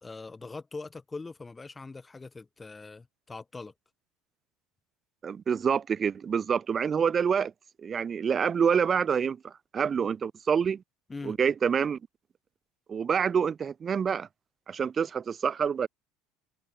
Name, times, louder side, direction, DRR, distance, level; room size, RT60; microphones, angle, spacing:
voice 1, 0.0-3.7 11.1-11.4, left 3 dB, 15° left, 2.4 m, -42 dB
voice 2, 5.2-7.5 7.8-10.8 11.2-12.0 12.9-14.3 14.7-15.9, right 7 dB, 30° right, 0.4 m, -27 dB
supercardioid pair, 110°, 0 cm